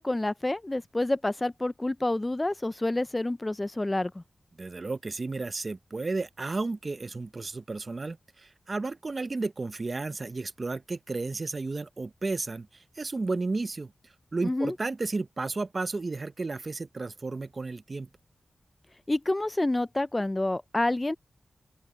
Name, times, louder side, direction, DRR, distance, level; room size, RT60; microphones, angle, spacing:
voice 1, 0.0-4.1 14.4-14.7 19.1-21.2, left 2 dB, 25° left, 0.5 m, -28 dB
voice 2, 4.6-12.7 13.0-13.9 14.3-18.1, right 3 dB, 45° right, 0.7 m, -33 dB
open air
wide cardioid pair, 70°, 0 cm